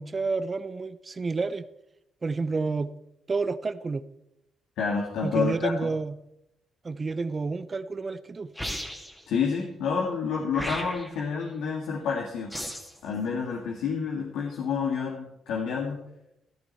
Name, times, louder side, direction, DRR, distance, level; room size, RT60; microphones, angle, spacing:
voice 1, 0.0-1.7 2.2-2.9 3.3-4.0 5.2-6.2 6.8-8.5, right 4 dB, 30° right, 15 dB, 0.7 m, -30 dB
voice 2, 4.8-5.9 9.3-12.6 13.0-16.0, left 5 dB, 85° left, -1 dB, 1.9 m, -29 dB
sound 1, 8.6-9.2 10.5-11.2 12.5-13.0, equal, 5° left, 2.5 m, -35 dB
14.0 x 12.0 x 4.2 m, 0.84 s
cardioid pair, 90°, 0 cm